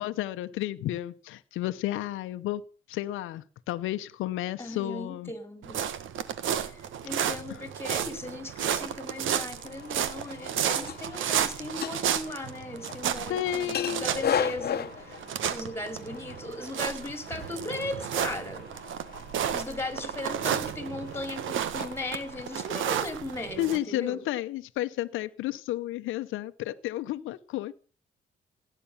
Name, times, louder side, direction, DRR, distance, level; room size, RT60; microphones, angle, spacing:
voice 1, 0.0-5.3 7.5-7.6 13.3-14.0 23.6-27.7, left 14 dB, 90° left, 0.9 m, -32 dB
voice 2, 4.6-5.8 6.6-18.6 19.5-24.2, left 2 dB, 10° left, 4.8 m, -37 dB
sound 1, 5.6-23.8, right 9 dB, 80° right, 1.6 m, -32 dB
sound 2, 9.6-22.9, left 9 dB, 55° left, 1.2 m, -38 dB
17.0 x 10.0 x 7.2 m
cardioid pair, 90°, 20 cm